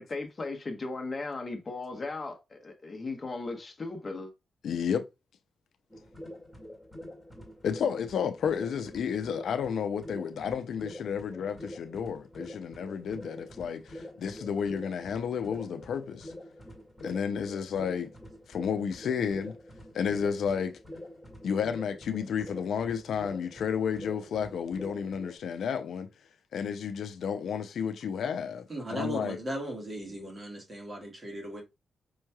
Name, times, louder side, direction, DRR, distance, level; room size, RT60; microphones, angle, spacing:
voice 1, 0.0-4.3, left 3 dB, 35° left, 1.0 m, -37 dB
voice 2, 4.6-5.0 7.6-16.3 17.0-18.1 18.5-19.6 19.9-20.8 21.4-26.1 26.5-29.4, left 7 dB, 80° left, 0.4 m, -32 dB
sound 1, 5.9-25.4, left 1 dB, 5° left, 1.8 m, -46 dB
voice 3, 28.7-31.6, right 1 dB, 30° right, 1.6 m, -37 dB
5.4 x 3.0 x 2.2 m
cardioid pair, 105°, 0 cm